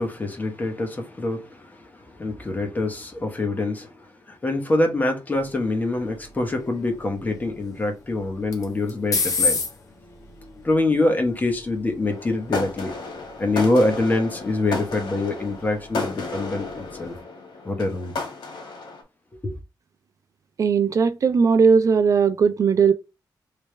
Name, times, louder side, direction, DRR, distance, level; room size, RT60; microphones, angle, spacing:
voice 1, 0.0-9.6 10.6-12.9 13.4-17.1 17.6-18.1 19.4-19.5, left 2 dB, 20° left, 1.0 m, -25 dB
sound 1, 5.3-17.2, left 4 dB, 50° left, 1.0 m, -34 dB
sound 2, 12.1-19.0, left 3 dB, 90° left, 1.6 m, -33 dB
voice 2, 20.6-22.9, right 5 dB, 45° right, 0.4 m, -18 dB
3.3 x 3.1 x 3.2 m
wide cardioid pair, 155°, 8 cm